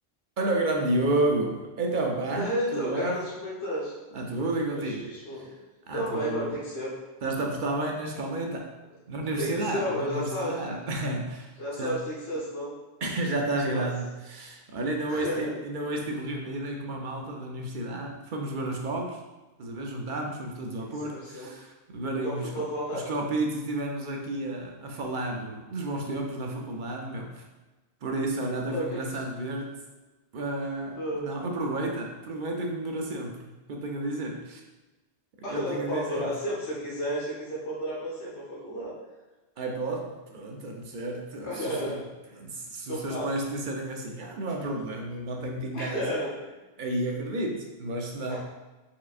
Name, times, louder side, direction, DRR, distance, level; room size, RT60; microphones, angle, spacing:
voice 1, 0.4-3.2 4.1-5.1 5.4-5.5 5.9-6.5 7.2-8.7 9.1-12.0 13.0-19.2 19.6-22.6 22.9-27.4 28.0-29.8 30.3-34.6 35.5-36.3 39.6-42.0 42.3-46.2 46.8-48.4, right 2 dB, 55° right, 1 dB, 0.7 m, -31 dB
voice 2, 2.4-3.9 4.7-5.5 5.9-7.0 9.4-10.8 11.6-12.7 13.7-13.9 15.1-15.5 21.0-21.5 22.2-23.0 28.7-29.2 31.0-31.3 35.4-38.9 41.4-42.0 42.9-43.3 45.7-46.3 47.0-47.1 48.3-48.4, equal, 90° left, -6 dB, 1.4 m, -32 dB
4.6 x 3.7 x 2.4 m, 1.2 s
omnidirectional pair, 1.2 m